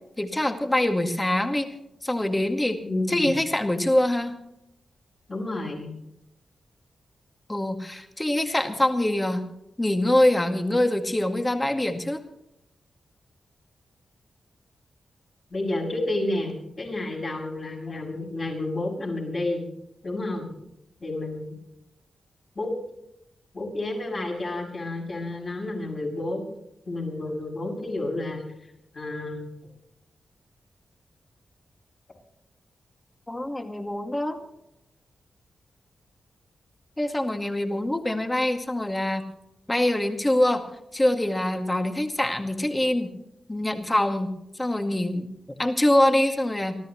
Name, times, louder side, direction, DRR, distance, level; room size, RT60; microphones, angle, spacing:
voice 1, 0.2-1.7 2.0-2.8 3.1-4.4 7.5-9.4 9.8-12.2 33.3-34.4 37.0-39.2 39.7-40.7 40.9-43.1 43.5-44.3 44.6-45.3 45.6-46.8, left 1 dB, 15° left, 5 dB, 2.1 m, -24 dB
voice 2, 2.8-3.3 5.3-5.9 15.5-19.7 20.0-20.5 21.0-21.6 22.6-22.7 23.5-26.4 26.9-28.4 28.9-29.4, left 2 dB, 45° left, -1 dB, 7.0 m, -30 dB
28.5 x 13.5 x 3.1 m, 0.80 s
cardioid pair, 85°, 0 cm